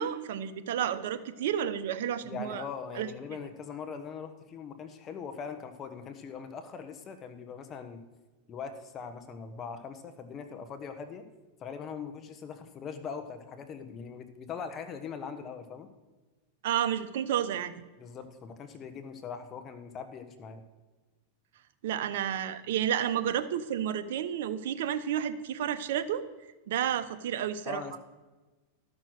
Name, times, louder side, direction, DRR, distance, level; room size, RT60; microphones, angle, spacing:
voice 1, 0.0-2.6 3.0-3.1 16.6-17.7 21.8-26.2 26.7-27.8, right 10 dB, 75° right, 11 dB, 0.8 m, -31 dB
voice 2, 2.2-8.0 8.5-11.2 11.6-15.9 18.0-20.6 27.6-28.0, left 6 dB, 30° left, 7 dB, 1.2 m, -41 dB
12.5 x 6.3 x 6.5 m, 1.2 s
supercardioid pair, 130°, 0 cm